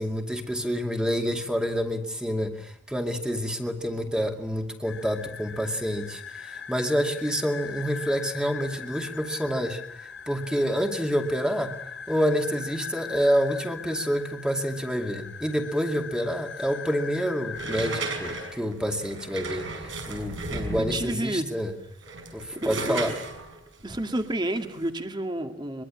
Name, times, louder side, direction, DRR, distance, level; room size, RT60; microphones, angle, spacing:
voice 1, 0.0-11.7 12.1-21.7 22.3-23.1, equal, 5° right, 3 dB, 2.4 m, -28 dB
sound 1, 4.8-18.5, left 6 dB, 80° left, 4.5 m, -40 dB
sound 2, 17.5-21.2 21.9-24.9, right 3 dB, 80° right, 6.0 m, -35 dB
voice 2, 20.8-21.5 22.6-23.1 23.8-25.8, right 1 dB, 25° right, 6 dB, 2.1 m, -30 dB
23.5 x 23.0 x 8.8 m, 0.72 s
head